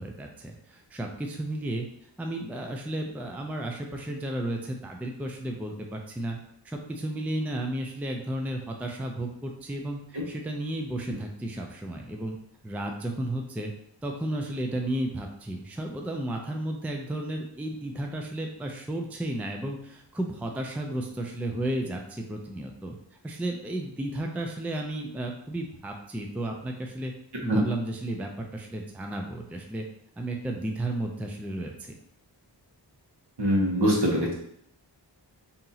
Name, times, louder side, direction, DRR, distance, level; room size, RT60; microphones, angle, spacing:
voice 1, 0.0-1.9 2.2-6.4 6.6-10.0 10.3-12.4 12.6-13.7 14.0-22.9 23.2-27.1 27.4-29.9 30.2-31.9, right 1 dB, 5° right, 2 dB, 0.4 m, -33 dB
voice 2, 33.4-34.4, equal, 60° right, -2 dB, 1.1 m, -23 dB
2.9 x 2.7 x 3.8 m, 0.71 s
wide cardioid pair, 50°, 45 cm